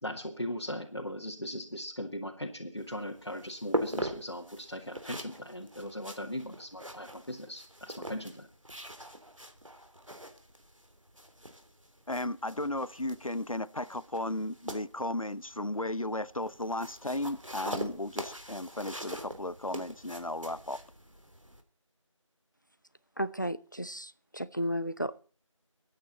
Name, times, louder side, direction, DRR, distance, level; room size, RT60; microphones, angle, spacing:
voice 1, 0.0-8.5, equal, 50° left, 2.3 m, -39 dB
sound 1, 2.8-21.6, equal, 70° right, 3.2 m, -42 dB
voice 2, 12.1-20.8, left 1 dB, 85° left, 1.0 m, -35 dB
voice 3, 23.2-25.2, equal, 35° left, 0.7 m, -34 dB
24.5 x 9.4 x 4.1 m
figure-of-eight pair, 180°, 17 cm